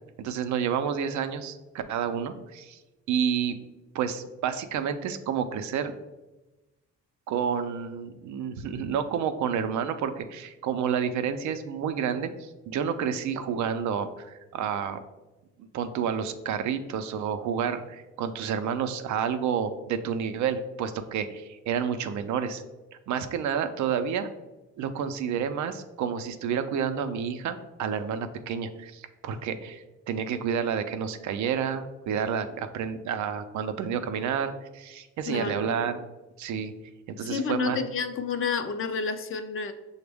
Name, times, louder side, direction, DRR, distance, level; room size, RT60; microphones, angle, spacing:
voice 1, 0.2-2.8 3.1-3.6 3.9-5.9 7.3-15.0 15.7-22.6 23.1-24.3 24.8-36.0 36.4-36.7 37.1-37.8, right 7 dB, 70° right, 9 dB, 0.5 m, -30 dB
voice 2, 35.3-35.7 37.2-39.7, left 5 dB, 45° left, 8 dB, 0.4 m, -30 dB
5.9 x 2.1 x 3.4 m, 1.1 s
cardioid pair, 90°, 30 cm